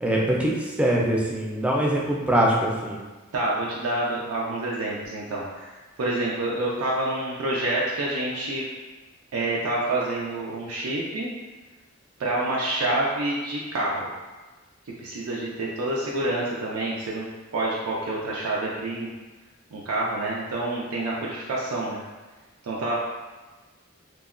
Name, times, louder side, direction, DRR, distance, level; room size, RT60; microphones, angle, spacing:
voice 1, 0.0-3.0, right 1 dB, 5° right, -3 dB, 0.3 m, -23 dB
voice 2, 3.3-8.6 9.3-11.3 12.2-14.1 15.0-17.3 17.5-19.1 19.7-22.0 22.6-23.0, right 2 dB, 85° right, -5 dB, 0.4 m, -27 dB
3.0 x 2.1 x 2.4 m, 1.2 s
head